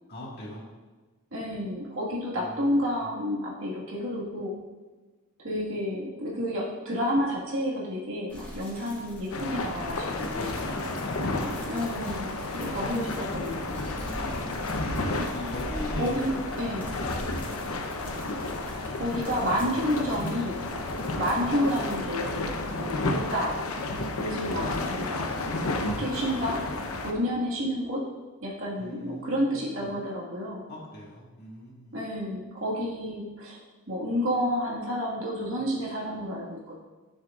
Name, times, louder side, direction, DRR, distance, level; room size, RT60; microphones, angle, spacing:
voice 1, 0.1-0.7 2.3-3.1 10.3-12.2 13.8-14.8 15.3-16.3 16.6-17.7 28.8-30.0 30.7-32.0, left 1 dB, 50° left, -4 dB, 1.9 m, -42 dB
voice 2, 1.3-4.5 5.4-10.5 11.7-13.8 15.1-15.5 16.0-16.3 16.6-16.8 19.0-20.6 21.2-22.5 22.8-23.6 24.2-25.3 25.8-26.6 27.0-28.0 28.4-30.6 31.9-36.8, equal, 65° right, -5 dB, 1.9 m, -30 dB
sound 1, 8.3-22.0, equal, 10° left, 2.7 m, -46 dB
sound 2, 9.3-27.1, left 2 dB, 85° left, 0.8 m, -32 dB
sound 3, 12.2-17.4, equal, 30° right, 1.1 m, -40 dB
12.0 x 6.3 x 2.5 m, 1.3 s
head